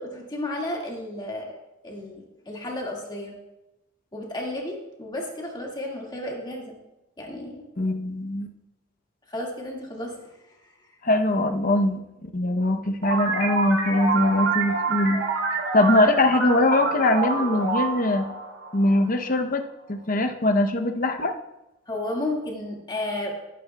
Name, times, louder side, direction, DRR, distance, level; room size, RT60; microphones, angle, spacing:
voice 1, 0.0-1.6 1.8-3.3 4.1-6.8 7.2-7.6 9.3-10.3 21.9-23.3, left 1 dB, 20° left, -1 dB, 2.0 m, -32 dB
voice 2, 7.8-8.5 11.0-15.2 15.5-18.3 18.7-19.6 19.9-21.3, left 1 dB, 45° left, 6 dB, 0.8 m, -22 dB
sound 1, 13.0-19.3, right 3 dB, 80° right, 2.8 m, -27 dB
19.0 x 9.4 x 2.3 m, 0.96 s
head